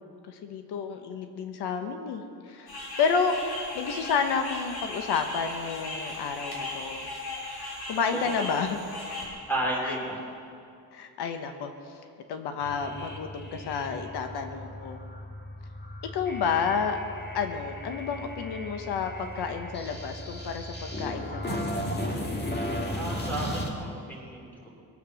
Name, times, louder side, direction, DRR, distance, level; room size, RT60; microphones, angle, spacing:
voice 1, 0.3-2.7 3.0-3.4 3.7-7.1 7.9-8.8 9.8-10.0 10.9-11.7 12.3-15.0 16.1-17.0 17.3-21.9, left 6 dB, 85° left, 6 dB, 1.2 m, -30 dB
sound 1, 2.7-9.2, left 2 dB, 70° left, 4.0 m, -37 dB
voice 2, 8.1-8.5 9.5-10.2 23.0-24.7, right 1 dB, 5° left, -3 dB, 3.6 m, -33 dB
sound 2, 12.6-23.7, equal, 25° left, 1.6 m, -36 dB
22.0 x 8.2 x 6.3 m, 2.4 s
cardioid pair, 155°, 39 cm